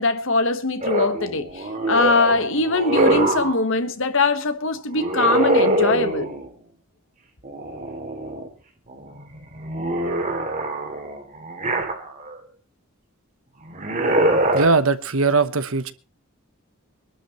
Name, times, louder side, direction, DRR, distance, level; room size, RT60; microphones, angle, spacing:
voice 1, 0.0-6.3, left 3 dB, 60° left, 1.4 m, -22 dB
sound 1, 0.8-3.6 4.9-6.5 7.4-8.5 8.9-12.4 13.7-14.7, right 2 dB, 35° right, 2.7 m, -24 dB
voice 2, 14.5-15.9, right 4 dB, 70° right, 1.0 m, -20 dB
24.0 x 12.0 x 3.1 m
head